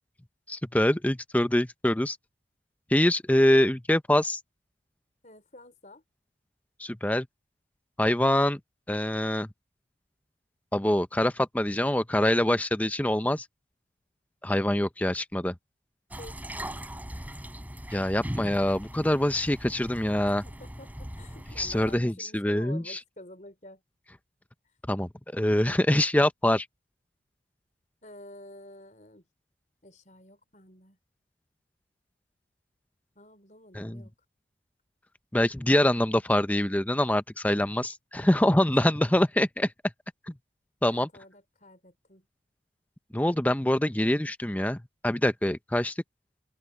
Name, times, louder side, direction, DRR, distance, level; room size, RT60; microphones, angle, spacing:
voice 1, 0.5-2.2 2.9-4.4 6.8-7.3 8.0-8.6 8.9-9.5 10.7-13.5 14.4-15.5 17.9-20.4 21.6-23.0 24.9-26.7 33.7-34.0 35.3-39.7 40.3-40.4 40.8-41.1 43.1-45.9, left 1 dB, 10° left, 0.6 m, -25 dB
voice 2, 5.2-6.0 16.2-16.4 20.4-23.8 28.0-29.2 29.8-31.0 33.1-34.1 38.4-38.6 40.9-42.3, left 1 dB, 40° left, 4.8 m, -49 dB
sound 1, 16.1-22.0, equal, 10° right, 6.6 m, -40 dB
open air
head